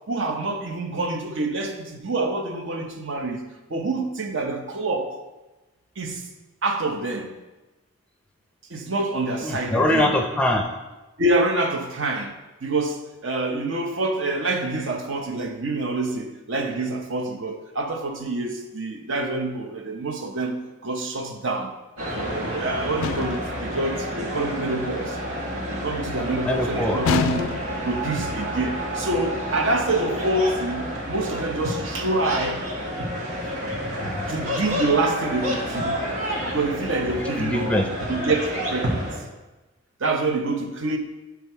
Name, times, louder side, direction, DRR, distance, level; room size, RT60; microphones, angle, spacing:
voice 1, 0.1-3.4 3.7-5.2 6.0-6.3 6.6-7.3 8.7-10.1 11.2-12.4 12.6-21.8 22.1-25.2 25.7-27.5 27.8-32.6 34.3-36.1 36.5-37.8 38.1-39.3 40.0-41.0, right 2 dB, 60° right, 0.8 m, -26 dB
voice 2, 9.4-10.7 26.4-27.0 33.4-34.3 37.2-37.9, left 1 dB, 5° left, 0.5 m, -24 dB
sound 1, 22.0-39.2, equal, 90° right, 1.7 m, -29 dB
sound 2, 23.0-23.6 27.0-27.9, left 7 dB, 80° left, 0.3 m, -26 dB
9.3 x 3.5 x 4.5 m
head